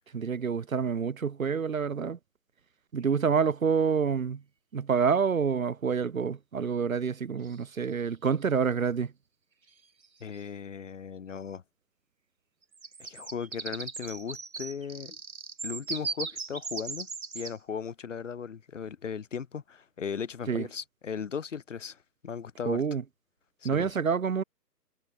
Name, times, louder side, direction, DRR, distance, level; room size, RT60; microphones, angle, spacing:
voice 1, 0.1-2.2 2.9-4.4 4.7-9.1 20.5-20.7 22.6-23.0 23.6-24.4, right 6 dB, 55° right, 1.4 m, -27 dB
sound 1, 3.1-3.2 7.4-8.0 9.7-9.8 10.0-10.4 12.6-17.6, right 4 dB, 80° right, 1.6 m, -38 dB
voice 2, 10.2-11.6 13.0-15.2 15.6-17.1 17.3-22.0 22.2-22.8 23.6-23.9, left 6 dB, 45° left, 2.1 m, -37 dB
figure-of-eight pair, 145°, 50 cm